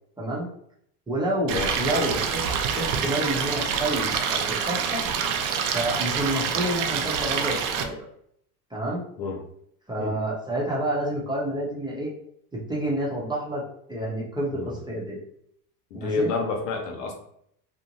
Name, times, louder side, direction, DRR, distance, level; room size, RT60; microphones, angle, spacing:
voice 1, 0.2-0.5 1.1-5.0 5.7-8.0 8.7-9.0 9.9-12.1 12.5-13.6 13.9-15.2 15.9-16.3, right 1 dB, 10° right, -4 dB, 0.7 m, -29 dB
voice 2, 1.5-2.1 9.2-9.4 10.0-10.2 14.5-14.7 15.9-17.1, left 4 dB, 85° left, 3 dB, 0.8 m, -29 dB
Stream, 1.5-7.8, right 7 dB, 60° right, 0.5 m, -26 dB
2.6 x 2.1 x 2.8 m, 0.70 s
supercardioid pair, 95°, 47 cm